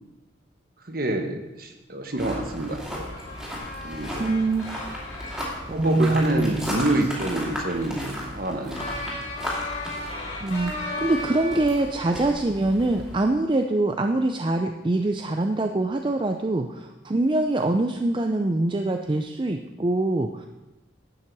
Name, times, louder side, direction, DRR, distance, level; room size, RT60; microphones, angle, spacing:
voice 1, 0.8-3.1 3.8-4.2 5.7-9.2, right 1 dB, 50° right, 5 dB, 1.3 m, -27 dB
sound 1, 2.2-13.2, equal, 5° right, 2.5 m, -35 dB
sound 2, 3.0-5.6 6.8-7.7 8.7-12.0, left 2 dB, 35° left, 3.5 m, -36 dB
voice 2, 4.2-4.9 5.7-6.8 10.4-20.5, right 2 dB, 25° right, 5 dB, 0.4 m, -24 dB
11.5 x 8.7 x 4.7 m, 1.0 s
head